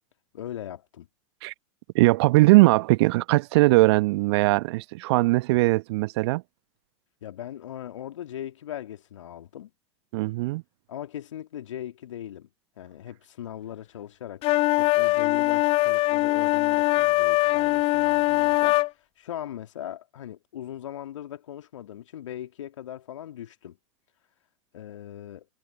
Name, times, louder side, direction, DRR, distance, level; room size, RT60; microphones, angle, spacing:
voice 1, 0.3-1.1 7.2-9.7 10.9-12.5 12.8-14.4 14.8-18.8 19.2-23.8 24.7-25.5, left 11 dB, 70° left, 2.6 m, -39 dB
voice 2, 1.9-6.4 10.1-10.6, right 21 dB, 55° right, 1.4 m, -20 dB
sound 1, 14.4-18.9, left 19 dB, 35° left, 0.5 m, -22 dB
figure-of-eight pair, 90°, 16 cm